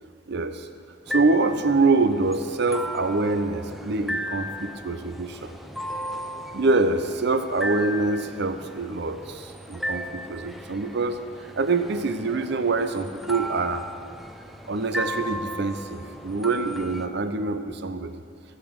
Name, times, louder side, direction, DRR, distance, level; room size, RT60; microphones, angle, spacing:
voice 1, 0.3-0.7 1.1-5.5 6.5-13.8 14.7-18.1, right 3 dB, 60° right, 9 dB, 0.6 m, -25 dB
sound 1, 1.1-17.1, equal, ahead, 0.5 m, -36 dB
15.5 x 8.2 x 5.1 m, 2.4 s
head